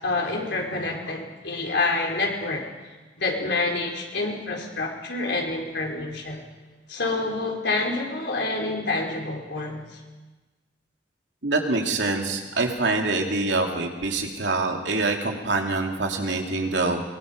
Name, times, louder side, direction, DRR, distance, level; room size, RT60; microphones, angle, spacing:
voice 1, 0.0-2.7 3.2-6.4 6.9-10.0, left 3 dB, 70° left, 0 dB, 4.5 m, -27 dB
voice 2, 11.4-17.0, right 3 dB, 90° right, 2 dB, 2.8 m, -25 dB
23.5 x 22.5 x 5.3 m, 1.2 s
head